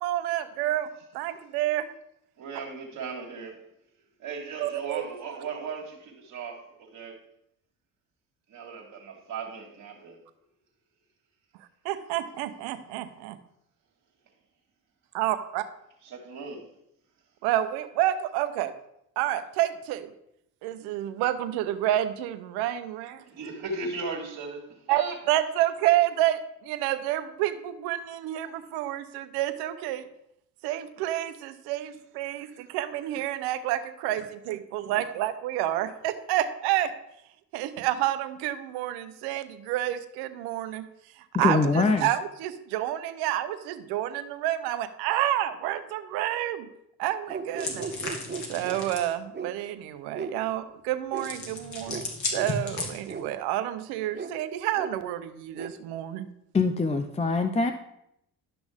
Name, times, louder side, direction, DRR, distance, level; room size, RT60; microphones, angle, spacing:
voice 1, 0.0-1.9 4.6-5.0 11.8-13.4 15.1-15.6 17.4-18.7 19.2-20.1 20.6-23.2 24.9-30.1 30.6-34.2 34.5-36.9 37.5-40.8 41.2-46.7 47.0-47.9 48.5-56.3, right 13 dB, 85° right, 0.8 m, -29 dB
voice 2, 2.4-3.6 4.2-7.2 8.5-10.2 16.0-16.7 23.2-25.2, right 4 dB, 60° right, 2.0 m, -37 dB
voice 3, 41.3-42.1 56.5-57.7, left 3 dB, 15° left, 0.6 m, -23 dB
sound 1, 47.3-48.8 49.3-49.5 50.1-50.4 51.1-51.3 51.9-52.0 52.3-52.5 53.1-53.2 54.1-54.3 54.7-54.9 55.5-55.7, right 5 dB, 30° right, 0.9 m, -36 dB
sound 2, 47.6-49.1 51.2-53.3, left 3 dB, 50° left, 2.3 m, -35 dB
12.0 x 6.1 x 3.6 m
supercardioid pair, 70°, 38 cm